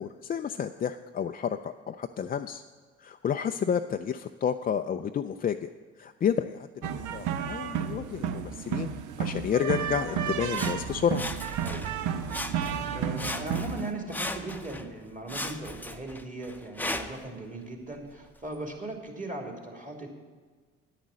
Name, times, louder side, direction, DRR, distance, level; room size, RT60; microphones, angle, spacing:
voice 1, 0.0-2.6 3.0-5.7 6.0-8.9 9.2-11.3, left 8 dB, 30° left, 7 dB, 0.4 m, -30 dB
sound 1, 6.8-13.9, right 8 dB, 65° right, 0.8 m, -32 dB
Sawing, 10.5-12.0 12.3-12.9 13.2-14.9 15.3-17.3 17.9-18.0, left 1 dB, 5° left, 0.8 m, -37 dB
voice 2, 11.6-11.9 12.5-20.1, right 2 dB, 25° right, 2 dB, 2.5 m, -38 dB
9.5 x 9.1 x 6.3 m, 1.5 s
hypercardioid pair, 55°, 33 cm